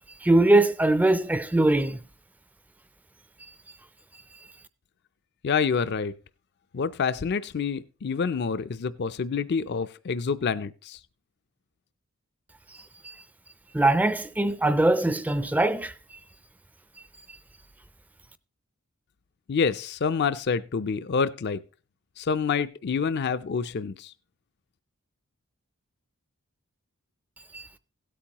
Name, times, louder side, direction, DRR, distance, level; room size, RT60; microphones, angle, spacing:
voice 1, 0.2-2.0 13.0-13.1 13.7-15.9 27.5-27.7, right 2 dB, 5° right, 0.4 m, -21 dB
voice 2, 5.4-6.1 6.7-11.0 19.5-21.6 22.2-24.1, left 5 dB, 50° left, 0.4 m, -27 dB
16.5 x 8.5 x 2.9 m
head